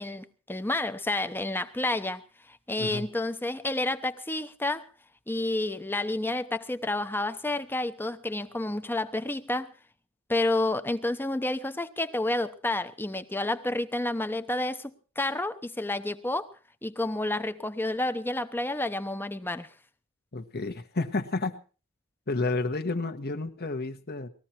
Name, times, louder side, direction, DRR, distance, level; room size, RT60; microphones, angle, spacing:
voice 1, 0.0-4.9 5.3-9.7 10.3-16.5 16.8-19.7, left 2 dB, 10° left, 0.9 m, -30 dB
voice 2, 20.3-21.6 22.3-24.3, left 3 dB, 45° left, 1.3 m, -31 dB
20.5 x 14.5 x 4.4 m
head